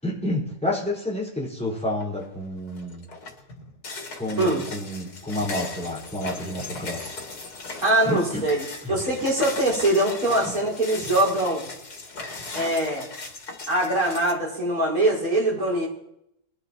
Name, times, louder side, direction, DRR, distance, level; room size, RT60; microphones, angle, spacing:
voice 1, 0.0-3.0 4.1-7.1 8.0-8.4 8.8-8.9, left 1 dB, 5° left, -5 dB, 4.9 m, -29 dB
sound 1, 1.9-2.3 2.7-14.3, left 3 dB, 90° left, 2.3 m, -38 dB
voice 2, 7.8-8.6 8.9-11.6 12.5-13.1 13.7-15.9, right 1 dB, 65° right, -4 dB, 5.5 m, -22 dB
21.5 x 12.0 x 3.0 m, 0.80 s
omnidirectional pair, 1.6 m